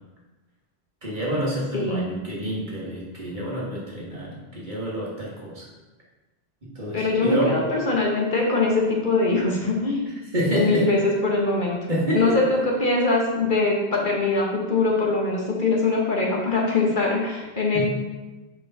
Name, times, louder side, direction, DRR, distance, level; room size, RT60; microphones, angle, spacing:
voice 1, 1.0-5.7 6.6-7.6 10.3-10.9 11.9-12.4 17.7-17.8, equal, 45° right, -5 dB, 1.7 m, -28 dB
voice 2, 1.7-2.1 6.9-10.1 10.5-11.8 12.1-17.8, left 3 dB, 50° left, -2 dB, 1.2 m, -22 dB
4.8 x 4.6 x 5.4 m, 1.1 s
omnidirectional pair, 1.1 m